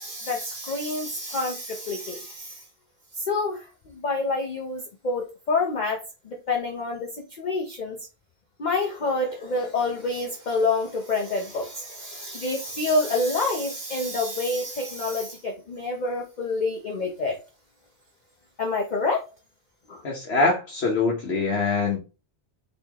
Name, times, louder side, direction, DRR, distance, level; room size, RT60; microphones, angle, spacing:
voice 1, 0.0-2.6 3.2-3.7 3.9-6.0 6.3-7.1 7.4-8.0 8.6-17.4 18.6-19.2 19.9-20.0, left 3 dB, 45° left, 0.7 m, -27 dB
voice 2, 20.0-22.0, left 3 dB, 65° left, 1.3 m, -23 dB
4.2 x 3.0 x 2.9 m
omnidirectional pair, 1.2 m